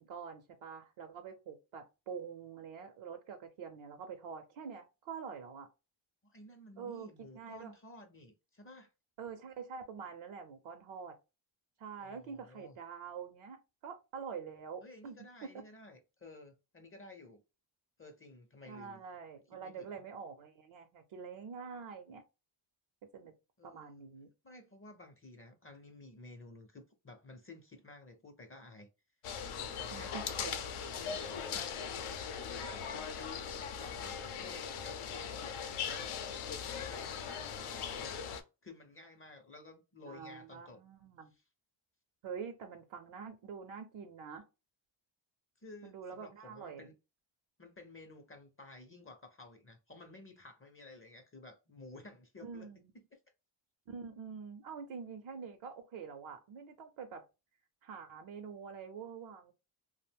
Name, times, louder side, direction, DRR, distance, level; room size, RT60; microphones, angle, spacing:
voice 1, 0.0-5.7 6.8-7.1 7.3-7.7 9.2-11.1 11.8-15.2 15.4-15.5 18.7-22.2 23.1-23.3 23.6-24.3 29.9-30.1 30.4-30.6 40.0-41.3 42.2-44.4 45.8-46.9 52.4-52.8 53.9-57.2 57.8-59.5, right 6 dB, 75° right, 0.6 m, -46 dB
voice 2, 6.2-8.9 12.0-12.8 14.8-17.4 18.0-19.0 19.5-20.0 23.6-24.0 24.4-28.9 29.6-30.6 31.0-31.8 32.2-33.3 33.7-36.2 36.7-40.8 41.3-41.4 45.6-46.9 47.6-52.7 52.9-53.2, left 2 dB, 30° left, 0.5 m, -54 dB
sound 1, 29.2-38.4, left 7 dB, 90° left, 0.6 m, -40 dB
2.5 x 2.1 x 3.3 m
cardioid pair, 95°, 49 cm